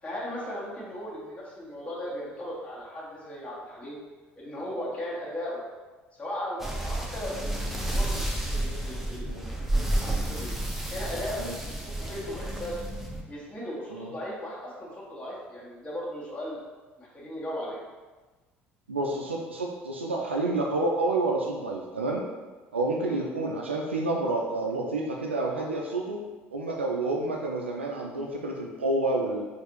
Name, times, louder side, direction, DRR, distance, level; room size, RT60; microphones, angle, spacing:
voice 1, 0.0-4.0 4.4-5.6 6.2-9.3 9.7-10.5 10.9-11.5 11.8-12.9 13.3-16.6 17.0-17.8 23.0-23.2, left 1 dB, 20° left, -7 dB, 1.4 m, -37 dB
sound 1, 6.6-13.2, right 1 dB, 5° right, 0.6 m, -31 dB
voice 2, 18.9-22.2 22.7-26.2 26.5-29.5, right 2 dB, 90° right, 0 dB, 0.3 m, -29 dB
4.6 x 2.4 x 3.0 m, 1.3 s
figure-of-eight pair, 60°, 6 cm